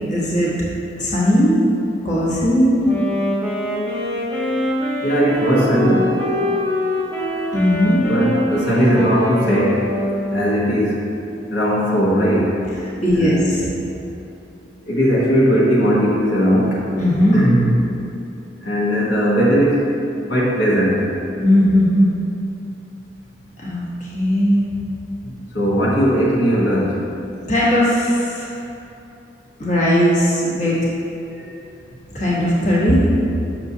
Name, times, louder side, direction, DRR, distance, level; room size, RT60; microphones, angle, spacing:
voice 1, 0.1-0.6 1.0-1.7 2.0-2.8 7.5-8.0 13.0-13.7 17.0-17.4 18.7-19.2 21.4-22.1 23.6-24.7 27.5-28.6 29.6-30.9 32.1-33.0, equal, 40° left, -7 dB, 1.2 m, -18 dB
Wind instrument woodwind instrument, 2.8-10.9, left 1 dB, 10° left, 1.1 m, -24 dB
voice 2, 5.0-6.1 8.1-9.9 10.3-11.0 11.5-12.5 13.1-13.5 14.9-16.8 17.3-17.7 18.6-19.9 20.3-21.1 25.2-27.0 31.5-31.6, equal, 70° left, -6 dB, 1.1 m, -18 dB
7.0 x 6.1 x 2.7 m, 2.8 s
head